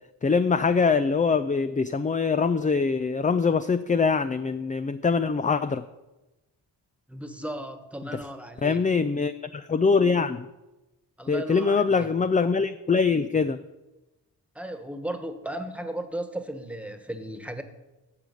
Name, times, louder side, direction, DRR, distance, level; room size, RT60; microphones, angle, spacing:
voice 1, 0.2-5.8 8.6-10.5 11.3-13.6, left 5 dB, 20° left, 11 dB, 0.4 m, -23 dB
voice 2, 7.1-8.8 11.2-12.1 14.5-17.6, right 1 dB, 5° right, 7 dB, 1.4 m, -35 dB
14.0 x 5.0 x 8.4 m, 1.1 s
cardioid pair, 70°, 42 cm